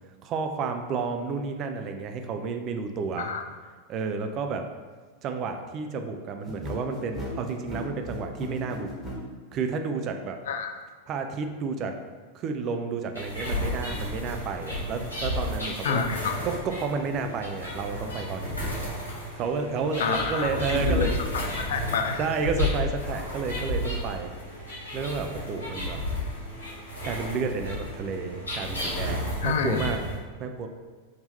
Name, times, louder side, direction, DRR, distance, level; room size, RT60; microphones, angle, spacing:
voice 1, 0.2-3.3 3.9-4.6 5.2-8.9 9.5-10.4 11.1-11.9 12.3-16.1 16.4-18.6 19.4-21.1 22.2-24.3 24.9-26.0 27.0-30.0 30.4-30.7, right 5 dB, 35° right, 5 dB, 0.4 m, -31 dB
sound 1, 6.4-9.2, left 1 dB, 10° right, 1.4 m, -36 dB
sound 2, 13.1-30.1, left 1 dB, 80° left, 1.5 m, -32 dB
voice 2, 15.8-16.3 20.0-22.2 29.4-29.9, left 6 dB, 60° left, 5 dB, 0.4 m, -28 dB
3.7 x 2.8 x 4.1 m, 1.4 s
figure-of-eight pair, 90°, 0 cm